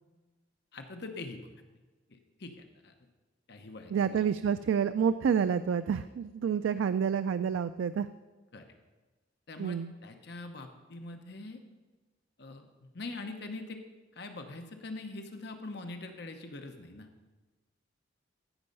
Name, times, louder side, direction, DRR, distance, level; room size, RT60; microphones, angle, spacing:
voice 1, 0.7-1.5 2.1-2.9 3.5-4.2 8.5-8.7 9.5-11.6 12.4-13.8 14.1-17.1, left 2 dB, 60° left, 5 dB, 0.9 m, -43 dB
voice 2, 3.9-8.1 9.6-9.9, right 7 dB, 90° right, 12 dB, 0.3 m, -28 dB
15.0 x 5.5 x 5.3 m, 1.2 s
head